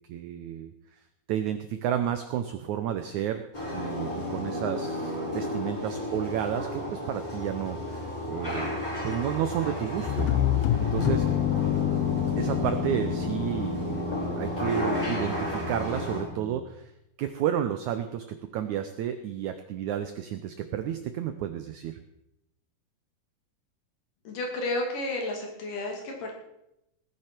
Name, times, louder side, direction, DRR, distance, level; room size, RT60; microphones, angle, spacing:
voice 1, 0.1-0.7 1.3-3.5 3.7-8.8 9.0-10.3 10.6-11.3 12.4-14.1 14.3-16.9 17.2-22.0, right 10 dB, 80° right, 9 dB, 1.7 m, -31 dB
sound 1, 3.5-16.2, left 1 dB, 10° left, 4.9 m, -33 dB
sound 2, 10.1-14.9, left 13 dB, 80° left, 2.5 m, -27 dB
Brass instrument, 10.9-16.8, equal, 35° right, 2.6 m, -36 dB
voice 2, 24.3-26.3, left 2 dB, 60° left, 1 dB, 4.0 m, -32 dB
18.5 x 10.0 x 4.5 m, 0.85 s
omnidirectional pair, 4.2 m